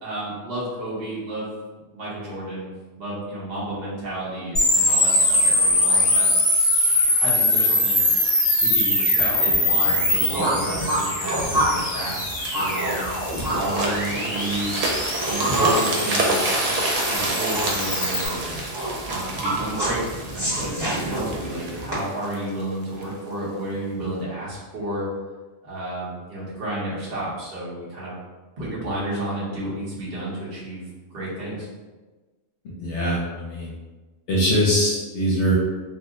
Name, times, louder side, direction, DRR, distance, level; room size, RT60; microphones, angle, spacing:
voice 1, 0.0-1.5 1.9-2.7 3.0-6.3 7.2-8.0 8.6-12.3 12.5-13.1 13.5-14.7 15.2-16.5 17.1-18.6 19.1-25.1 25.6-28.1 28.6-31.7, right 1 dB, 50° right, -8 dB, 1.2 m, -31 dB
sound 1, 4.6-18.3, left 1 dB, 25° left, 0.9 m, -22 dB
sound 2, 9.8-21.9, right 1 dB, 20° right, 1.0 m, -27 dB
sound 3, 11.3-23.1 23.7-23.9, right 2 dB, 70° right, 0.3 m, -29 dB
voice 2, 32.8-33.7 34.3-35.5, equal, 70° left, -4 dB, 0.9 m, -22 dB
2.8 x 2.1 x 3.5 m, 1.3 s
omnidirectional pair, 1.3 m